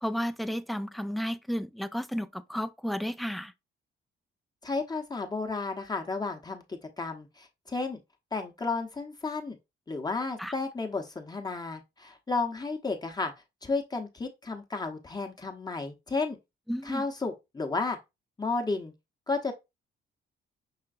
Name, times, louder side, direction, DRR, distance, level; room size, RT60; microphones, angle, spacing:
voice 1, 0.0-3.5 10.4-10.5 16.7-17.0, equal, ahead, 0.3 m, -32 dB
voice 2, 4.6-8.0 8.3-9.6 9.9-13.3 13.6-16.4 16.8-18.0 18.4-18.9 19.3-19.5, left 3 dB, 20° left, 0.8 m, -32 dB
5.7 x 3.1 x 2.5 m
cardioid pair, 90°, 20 cm